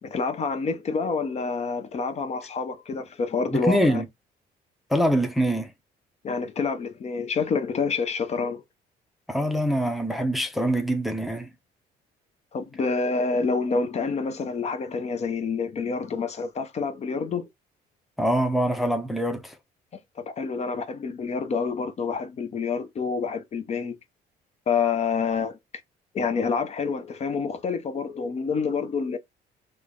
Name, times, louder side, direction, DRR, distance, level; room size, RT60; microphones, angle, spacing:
voice 1, 0.0-4.0 6.2-8.6 12.5-17.5 20.2-24.0 24.7-25.6 26.1-29.2, left 5 dB, 40° left, 0.6 m, -27 dB
voice 2, 3.5-4.0 4.9-5.7 9.3-11.5 18.2-19.5, equal, ahead, 0.6 m, -24 dB
3.2 x 2.1 x 3.7 m
cardioid pair, 110°, 17 cm